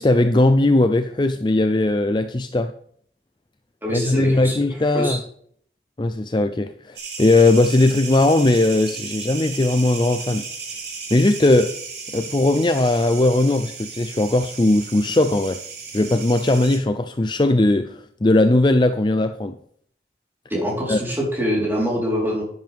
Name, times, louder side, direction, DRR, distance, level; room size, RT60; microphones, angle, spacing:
voice 1, 0.0-2.7 3.9-5.2 6.0-10.4 11.1-11.7 12.1-15.6 15.9-19.6 20.9-21.0, left 2 dB, 25° left, 9 dB, 0.5 m, -18 dB
voice 2, 3.8-4.6 4.9-5.2 20.5-22.4, equal, 10° right, -3 dB, 4.0 m, -24 dB
sound 1, 7.0-16.8, right 5 dB, 70° right, 4.0 m, -35 dB
10.5 x 10.5 x 3.6 m, 0.62 s
head